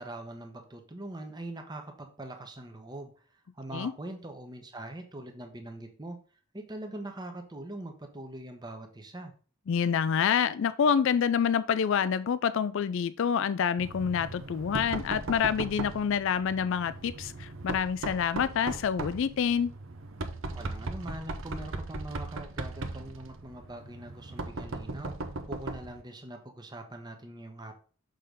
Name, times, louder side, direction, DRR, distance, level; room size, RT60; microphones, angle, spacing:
voice 1, 0.0-3.1 3.5-6.2 6.5-9.3 20.5-25.1 25.5-27.7, right 1 dB, 20° right, 1.0 m, -42 dB
voice 2, 9.7-19.7, left 7 dB, 60° left, 0.3 m, -27 dB
Knock, 13.8-26.0, right 2 dB, 65° right, 0.8 m, -38 dB
6.5 x 3.9 x 5.1 m
head